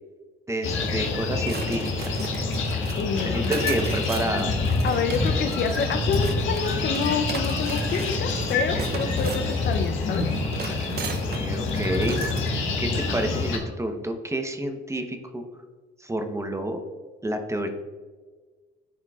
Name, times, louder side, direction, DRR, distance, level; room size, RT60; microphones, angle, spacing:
voice 1, 0.5-2.3 3.2-4.5 11.3-12.2 12.8-15.4 16.0-16.8 17.2-17.7, right 1 dB, 15° right, 6 dB, 0.8 m, -29 dB
sound 1, 0.6-13.6, left 3 dB, 80° left, 1.4 m, -27 dB
sound 2, 1.4-12.5, right 5 dB, 55° right, 0.7 m, -37 dB
voice 2, 3.0-3.5 4.8-10.2, left 5 dB, 60° left, 8 dB, 0.6 m, -28 dB
11.0 x 4.5 x 2.4 m, 1.4 s
cardioid pair, 90°, 20 cm